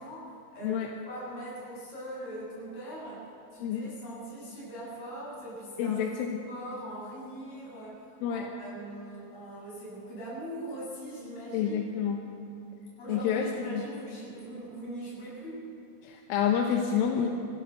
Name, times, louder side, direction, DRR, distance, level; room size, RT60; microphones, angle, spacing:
voice 1, 0.0-3.2 3.5-6.1 6.5-11.8 13.0-15.7, right 1 dB, 35° left, -6 dB, 8.4 m, -41 dB
voice 2, 3.6-3.9 5.8-6.4 8.2-8.4 11.5-12.3 13.1-13.9 16.0-17.3, left 8 dB, 80° left, 2 dB, 3.7 m, -28 dB
25.5 x 15.5 x 6.9 m, 2.5 s
omnidirectional pair, 5.7 m